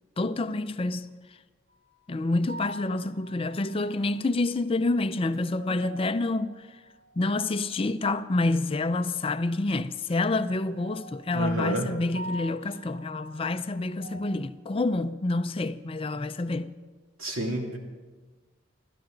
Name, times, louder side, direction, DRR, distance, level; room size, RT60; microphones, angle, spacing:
voice 1, 0.2-1.1 2.1-6.6 7.2-16.7, left 2 dB, 25° left, 0.4 m, -28 dB
sound 1, 1.7-2.0 2.5-4.3 4.8-7.7 10.1-14.2, equal, 50° right, 4.3 m, -46 dB
voice 2, 11.3-11.9 17.2-17.8, right 1 dB, 85° right, 2.8 m, -29 dB
28.0 x 12.5 x 3.9 m
head